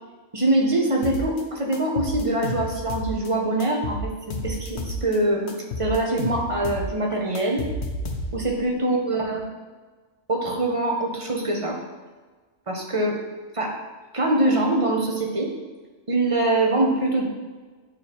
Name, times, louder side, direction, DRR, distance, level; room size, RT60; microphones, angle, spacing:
voice 1, 0.3-5.5 5.8-7.7 8.3-9.4 10.3-11.8 12.7-13.2 13.5-13.8 14.1-15.5 16.1-17.3, right 1 dB, 30° right, 0 dB, 0.8 m, -23 dB
sound 1, 1.0-1.4 1.7-3.3 3.6-5.2 5.5-8.6, left 1 dB, 65° left, 1.0 m, -31 dB
8.8 x 3.1 x 4.1 m, 1.3 s
omnidirectional pair, 1.3 m